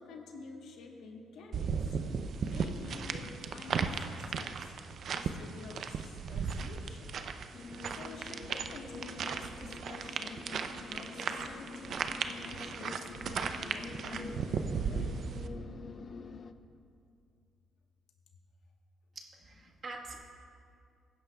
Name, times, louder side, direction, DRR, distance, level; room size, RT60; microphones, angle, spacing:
voice 1, 0.0-1.8 2.4-4.6 5.1-7.1 7.9-12.0 12.4-15.1, left 3 dB, 80° left, 2 dB, 1.2 m, -49 dB
sound 1, 1.5-15.5, right 6 dB, 60° right, 0.5 m, -36 dB
sound 2, 7.5-16.5, left 4 dB, 45° left, 0.4 m, -47 dB
voice 2, 19.1-20.1, right 3 dB, 45° right, 0 dB, 1.4 m, -45 dB
16.5 x 10.5 x 2.3 m, 2.4 s
cardioid pair, 90°, 0 cm